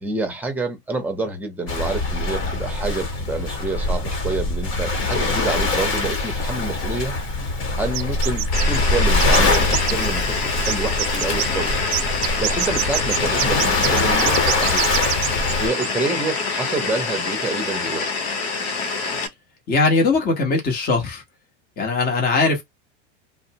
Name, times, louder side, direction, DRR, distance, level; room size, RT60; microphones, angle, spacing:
voice 1, 0.0-7.2 7.7-11.7 12.4-14.9 15.6-18.1, right 3 dB, 5° right, 0.8 m, -28 dB
Waves surf, 1.7-15.7, left 2 dB, 50° left, 1.3 m, -23 dB
sound 1, 7.9-8.8 9.2-10.4 10.6-11.5 11.9-15.5 15.8-15.9, right 16 dB, 50° right, 0.4 m, -25 dB
sound 2, 8.5-19.3, left 4 dB, 75° left, 0.9 m, -26 dB
voice 2, 19.7-21.2 21.8-22.6, left 3 dB, 30° left, 1.0 m, -20 dB
2.5 x 2.1 x 2.8 m
supercardioid pair, 130°, 32 cm